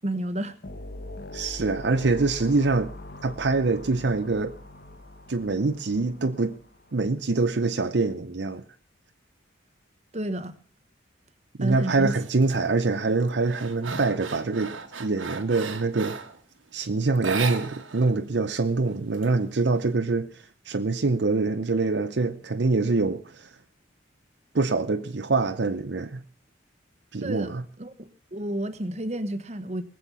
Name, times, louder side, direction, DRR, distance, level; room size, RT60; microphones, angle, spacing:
voice 1, 0.0-0.6 10.1-10.5 11.6-12.1 27.2-29.8, right 1 dB, 35° right, 1.1 m, -31 dB
sound 1, 0.6-7.1, left 2 dB, 55° left, 1.3 m, -42 dB
voice 2, 1.3-2.9 3.2-4.6 5.3-6.6 6.9-8.6 11.6-16.2 16.7-23.5 24.5-26.2 27.1-27.6, right 3 dB, 60° right, 0.7 m, -25 dB
sound 2, 12.2-12.6 13.0-16.4 17.1-18.1 18.4-18.5 18.9-19.8, right 5 dB, 90° right, 1.6 m, -35 dB
20.0 x 7.9 x 6.9 m
head